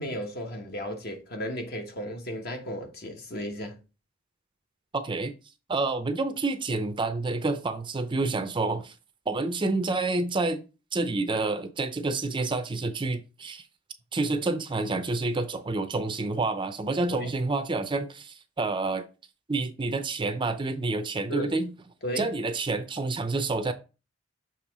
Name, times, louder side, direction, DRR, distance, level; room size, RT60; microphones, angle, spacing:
voice 1, 0.0-3.8 17.1-17.3 21.3-21.5 22.0-22.3, equal, 55° left, 1.3 m, -34 dB
voice 2, 4.9-5.3 5.7-8.9 9.3-10.6 10.9-13.6 14.1-19.0 19.5-21.7 22.2-23.7, right 3 dB, 25° right, 0.5 m, -28 dB
7.1 x 3.1 x 4.8 m
head